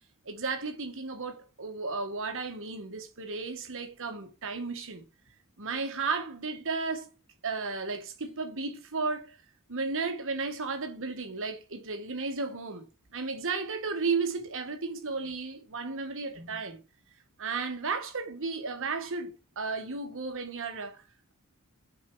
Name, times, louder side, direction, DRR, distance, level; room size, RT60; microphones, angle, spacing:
voice 1, 0.2-5.0 5.6-7.1 7.4-9.4 9.7-12.9 13.1-16.8 17.4-21.0, right 4 dB, 60° right, 1.5 m, -34 dB
6.6 x 4.7 x 4.6 m
head